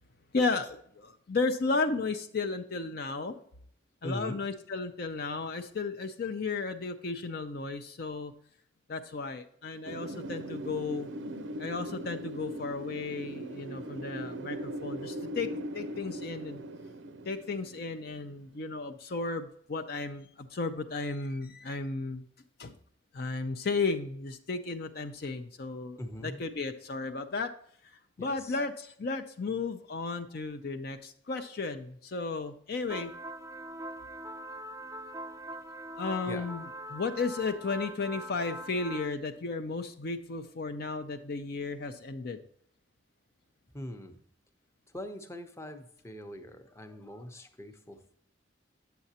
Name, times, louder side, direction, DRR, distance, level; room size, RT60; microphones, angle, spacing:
voice 1, 0.3-3.4 4.0-8.3 8.9-11.1 11.6-16.6 17.2-22.2 22.6-22.7 23.1-27.5 28.2-33.1 36.0-42.4, left 3 dB, 55° left, 7 dB, 0.5 m, -34 dB
voice 2, 4.0-4.4 26.0-26.4 28.2-28.6 36.3-36.4 43.7-44.2 44.9-48.2, left 1 dB, 15° left, 6 dB, 0.7 m, -41 dB
Wind, 9.9-18.6, right 1 dB, 80° right, 0.5 m, -40 dB
sound 1, 32.9-39.1, right 1 dB, 15° right, 0.4 m, -42 dB
8.2 x 7.7 x 2.8 m, 0.64 s
head